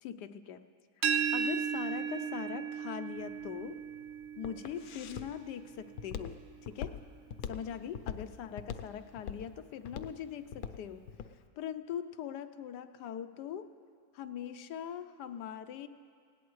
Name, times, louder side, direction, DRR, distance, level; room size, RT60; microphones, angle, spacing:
voice 1, 0.0-0.6 1.3-3.8 4.4-7.0 7.5-11.0 11.6-13.7 14.1-15.9, left 9 dB, 90° left, 10 dB, 1.2 m, -41 dB
sound 1, 1.0-6.8, right 7 dB, 55° right, 0.8 m, -36 dB
Walk footsteps, 3.2-11.4, left 8 dB, 70° left, 1.0 m, -42 dB
19.5 x 17.5 x 3.1 m, 2.1 s
omnidirectional pair, 1.7 m